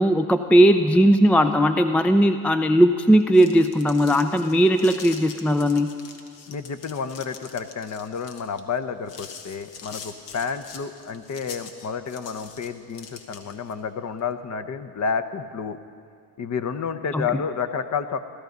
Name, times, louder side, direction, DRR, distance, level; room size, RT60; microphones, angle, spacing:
voice 1, 0.0-6.0 17.1-17.4, equal, 5° left, 8 dB, 0.4 m, -18 dB
sound 1, 3.2-13.7, left 6 dB, 70° left, 1.5 m, -43 dB
voice 2, 6.5-15.8 16.4-18.2, left 6 dB, 35° left, 10 dB, 0.9 m, -30 dB
16.5 x 13.0 x 5.3 m, 2.2 s
hypercardioid pair, 65°, 47 cm